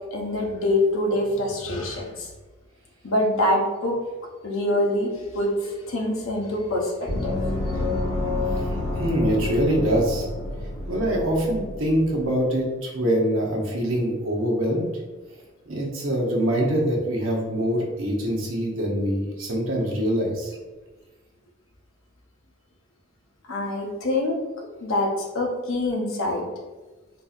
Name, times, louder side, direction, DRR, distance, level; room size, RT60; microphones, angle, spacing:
voice 1, 0.1-2.3 3.0-4.0 4.4-7.3 7.7-7.9 23.5-24.4 24.8-26.5, left 1 dB, 90° left, 0 dB, 0.7 m, -25 dB
Gong, 7.1-12.3, left 2 dB, 30° left, 1.1 m, -29 dB
voice 2, 8.9-10.3 10.9-14.9 15.7-20.5, equal, 85° right, -2 dB, 0.9 m, -24 dB
3.9 x 2.8 x 2.4 m, 1.2 s
head